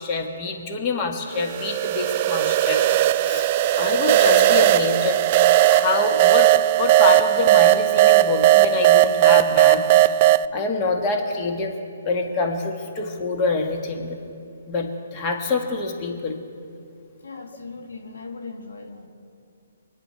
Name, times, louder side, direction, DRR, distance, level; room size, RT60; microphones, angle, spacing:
voice 1, 0.0-2.8 3.2-5.2 5.7-6.5 6.8-10.2 10.5-11.7 12.0-14.2 14.7-16.4, left 3 dB, 25° left, 2 dB, 1.7 m, -26 dB
sound 1, 1.4-10.5, right 14 dB, 40° right, 0.3 m, -17 dB
voice 2, 17.2-19.1, left 4 dB, 75° left, 3 dB, 1.7 m, -38 dB
24.5 x 10.0 x 4.7 m, 2.5 s
hypercardioid pair, 140°, 0 cm